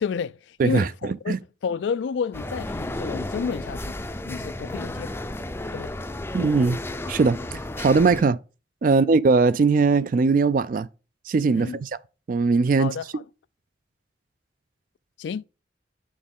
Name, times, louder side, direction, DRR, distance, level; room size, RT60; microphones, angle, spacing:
voice 1, 0.0-4.0 4.3-5.2 5.7-5.9 8.9-9.0 11.5-11.8 12.8-13.2 15.2-15.5, left 6 dB, 75° left, 0.3 m, -31 dB
voice 2, 0.6-1.4 6.3-6.8 7.1-8.4 8.8-10.9 11.3-11.9 12.3-12.9, right 4 dB, 50° right, 0.3 m, -20 dB
sound 1, 2.3-8.2, left 1 dB, 15° left, 0.4 m, -33 dB
7.0 x 6.3 x 3.6 m
head